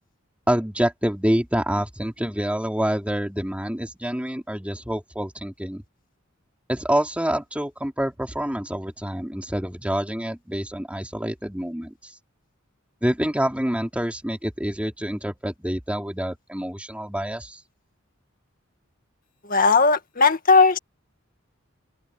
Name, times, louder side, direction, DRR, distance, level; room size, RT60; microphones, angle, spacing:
voice 1, 0.5-5.8 6.7-12.1 13.0-17.6, equal, 5° right, 3.6 m, -27 dB
voice 2, 19.4-20.8, left 4 dB, 45° left, 2.0 m, -17 dB
open air
head